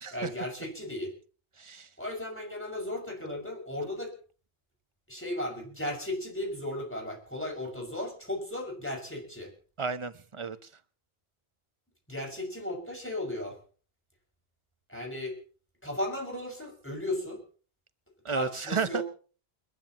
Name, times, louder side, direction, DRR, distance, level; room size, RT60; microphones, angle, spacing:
voice 1, 0.1-1.1 2.0-4.1 5.1-9.5 12.1-13.6 14.9-15.4 15.8-17.4 18.3-19.0, left 1 dB, 10° left, 6.0 m, -35 dB
voice 2, 1.6-1.9 9.8-10.7 18.2-19.0, right 5 dB, 30° right, 0.9 m, -33 dB
29.0 x 12.5 x 3.0 m
omnidirectional pair, 1.1 m